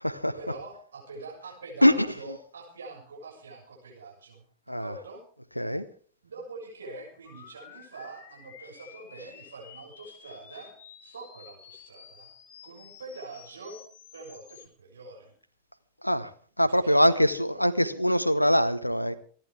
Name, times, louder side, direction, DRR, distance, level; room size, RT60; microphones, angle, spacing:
voice 1, 0.4-5.2 6.2-10.7 11.0-12.3 12.6-13.8 14.1-15.3 16.6-17.1 17.5-17.6, right 3 dB, 70° right, -1 dB, 6.8 m, -44 dB
voice 2, 1.8-2.4 4.7-4.9 5.6-5.8 16.0-16.3 16.6-19.2, equal, 90° left, 14 dB, 0.9 m, -23 dB
sound 1, 7.2-14.7, left 8 dB, 45° left, 2.8 m, -51 dB
28.5 x 10.5 x 3.6 m, 0.44 s
figure-of-eight pair, 90°, 0 cm